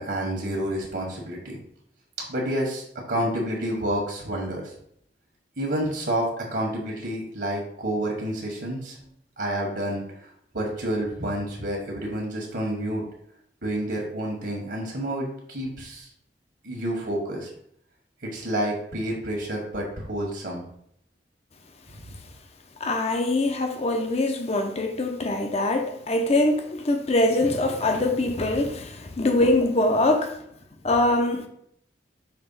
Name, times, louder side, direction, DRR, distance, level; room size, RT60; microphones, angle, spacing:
voice 1, 0.0-1.6 2.3-4.7 5.6-9.0 9.4-13.0 13.6-16.1 16.6-17.5 18.2-20.6 22.0-22.1, right 1 dB, 65° right, 1.4 m, -29 dB
voice 2, 22.8-30.3 30.8-31.5, left 2 dB, 35° left, 0.7 m, -23 dB
5.9 x 3.1 x 5.6 m
head